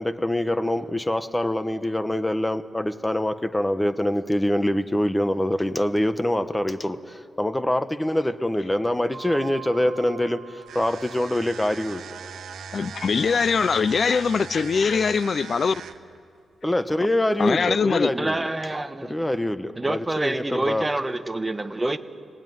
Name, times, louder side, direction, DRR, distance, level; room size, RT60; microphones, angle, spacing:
voice 1, 0.0-12.0 16.6-18.5 19.1-20.9, left 1 dB, 10° left, 1.1 m, -25 dB
Mallet percussion, 9.1-11.8, right 8 dB, 35° right, 3.6 m, -43 dB
sound 1, 10.6-16.2, right 7 dB, 90° right, 1.3 m, -40 dB
voice 2, 12.7-15.7 17.4-18.1, left 5 dB, 50° left, 0.6 m, -22 dB
voice 3, 18.1-19.2 19.8-22.0, right 2 dB, 15° right, 1.2 m, -27 dB
29.0 x 19.0 x 9.5 m
wide cardioid pair, 120°, 0 cm